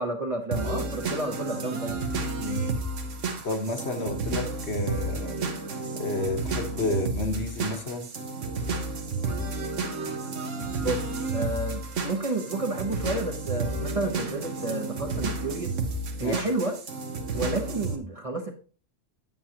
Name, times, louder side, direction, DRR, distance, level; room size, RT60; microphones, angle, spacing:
voice 1, 0.0-2.0 10.8-11.0 11.3-15.7 16.2-16.8 17.3-18.5, right 2 dB, 30° right, 3 dB, 0.8 m, -30 dB
sound 1, 0.5-18.0, right 3 dB, 70° right, 1.4 m, -31 dB
voice 2, 2.4-2.8 3.4-5.3 5.9-8.1 16.2-16.5, left 2 dB, 60° left, 4 dB, 1.4 m, -30 dB
8.8 x 7.9 x 2.9 m, 0.38 s
omnidirectional pair, 1.3 m